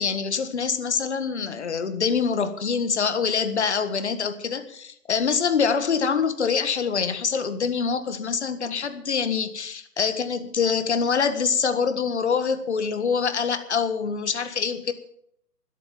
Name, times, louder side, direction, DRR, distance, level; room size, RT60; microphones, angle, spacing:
voice 1, 0.0-14.9, left 6 dB, 45° left, 10 dB, 1.6 m, -25 dB
12.5 x 12.0 x 7.3 m, 0.68 s
figure-of-eight pair, 145°, 46 cm